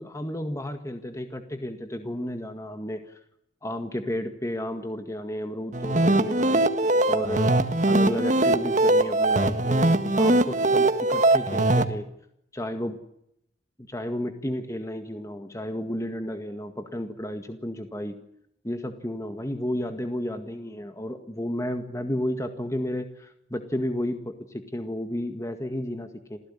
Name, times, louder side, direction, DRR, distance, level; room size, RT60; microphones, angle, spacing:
voice 1, 0.0-3.2 3.6-6.6 7.1-7.5 7.8-12.1 12.5-13.0 13.8-18.2 18.6-26.4, left 1 dB, 15° left, 6 dB, 1.8 m, -32 dB
sound 1, 5.7-11.9, right 2 dB, 40° right, 1.8 m, -21 dB
27.5 x 16.5 x 9.9 m, 0.78 s
head